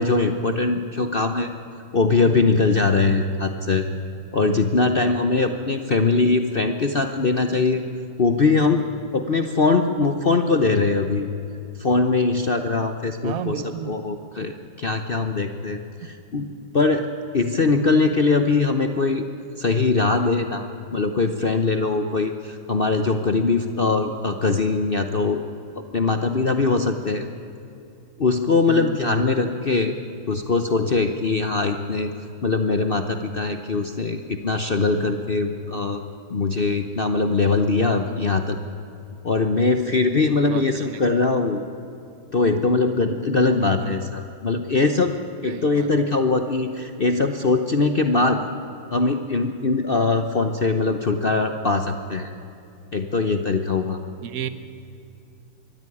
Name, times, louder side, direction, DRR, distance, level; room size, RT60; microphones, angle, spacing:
voice 1, 0.0-1.5 1.9-3.8 4.3-7.8 8.2-8.8 9.1-11.3 11.8-17.1 17.3-19.3 19.6-25.4 25.7-27.2 28.2-29.9 30.3-32.1 32.4-36.0 36.3-38.6 39.2-41.6 42.3-45.1 45.4-48.4 48.9-52.3 52.9-54.0, left 3 dB, 55° left, 7 dB, 0.6 m, -21 dB
voice 2, 13.2-14.0 17.7-18.0 28.7-29.2 40.5-41.0 43.8-44.0 45.4-45.9 54.2-54.5, right 8 dB, 50° right, 12 dB, 1.2 m, -32 dB
23.0 x 13.5 x 9.9 m, 2.6 s
omnidirectional pair, 2.2 m